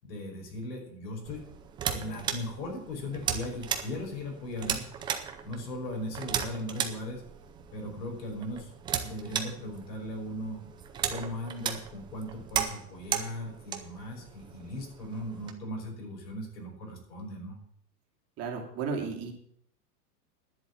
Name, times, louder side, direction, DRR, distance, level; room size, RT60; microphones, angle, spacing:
voice 1, 0.0-1.5 1.9-4.8 5.4-7.2 7.7-8.7 9.0-10.6 11.1-17.6, left 1 dB, 85° left, 1 dB, 5.5 m, -38 dB
sound 1, 1.2-15.5, right 8 dB, 10° right, 0.4 m, -36 dB
voice 2, 18.4-19.3, right 5 dB, 30° right, 2 dB, 2.5 m, -33 dB
10.5 x 7.3 x 8.3 m, 0.66 s
hypercardioid pair, 140°, 48 cm